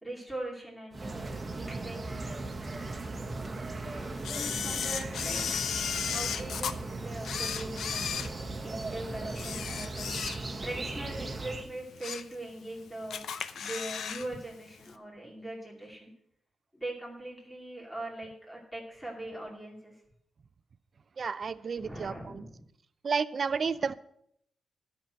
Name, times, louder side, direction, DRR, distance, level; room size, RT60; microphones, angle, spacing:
voice 1, 0.0-2.4 3.8-5.6 6.1-16.1 16.7-19.9 21.8-22.6, right 1 dB, ahead, -2 dB, 2.6 m, -41 dB
sound 1, 0.9-11.7, right 2 dB, 25° right, 1.3 m, -38 dB
Camera, 4.2-6.7 7.2-8.9 9.3-10.7 11.1-11.2 11.7-12.3 12.7-12.8 13.1-14.3 14.5-14.6, left 7 dB, 75° left, 0.6 m, -35 dB
voice 2, 21.2-22.5 23.0-23.9, right 5 dB, 45° right, 15 dB, 0.5 m, -31 dB
12.0 x 6.1 x 7.5 m, 0.73 s
cardioid pair, 115°, 0 cm